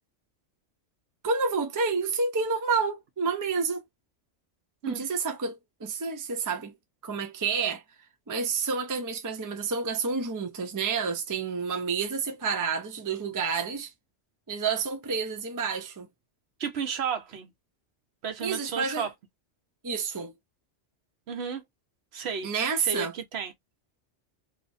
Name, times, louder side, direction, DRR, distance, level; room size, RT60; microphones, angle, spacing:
voice 1, 1.2-3.8 4.9-6.7 7.0-7.8 8.3-13.9 14.5-16.1 18.4-19.1 19.8-20.3 22.4-23.1, right 5 dB, 30° right, 0.3 m, -29 dB
voice 2, 16.6-17.5 18.2-19.1 21.3-21.6 22.1-22.5 22.8-23.5, right 6 dB, 65° right, 0.9 m, -33 dB
3.0 x 2.0 x 2.5 m
omnidirectional pair, 1.3 m